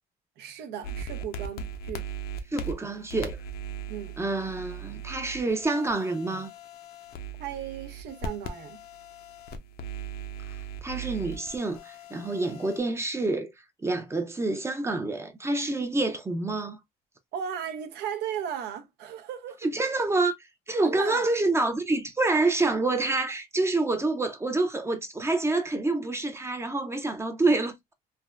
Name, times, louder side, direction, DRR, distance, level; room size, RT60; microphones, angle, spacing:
voice 1, 0.4-2.1 3.9-4.2 7.4-8.8 17.3-19.6 20.8-21.3, right 9 dB, 80° right, 0.6 m, -36 dB
sound 1, 0.8-12.8, right 4 dB, 65° left, 0.5 m, -39 dB
voice 2, 2.5-3.4 4.2-6.5 10.8-13.5 13.8-16.8 19.6-20.3 20.7-27.7, right 2 dB, 15° right, 0.5 m, -27 dB
3.4 x 2.1 x 2.2 m
cardioid pair, 110°, 17 cm